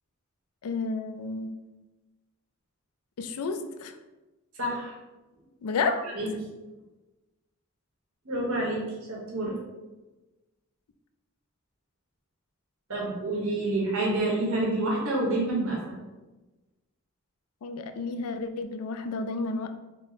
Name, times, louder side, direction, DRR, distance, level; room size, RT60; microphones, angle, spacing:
voice 1, 0.6-1.5 3.2-3.9 5.6-6.2 17.6-19.7, left 4 dB, 90° left, 8 dB, 0.4 m, -31 dB
voice 2, 4.6-5.0 6.1-6.3 8.2-9.6 12.9-15.9, right 2 dB, 80° right, -3 dB, 1.2 m, -28 dB
3.7 x 2.0 x 4.0 m, 1.1 s
head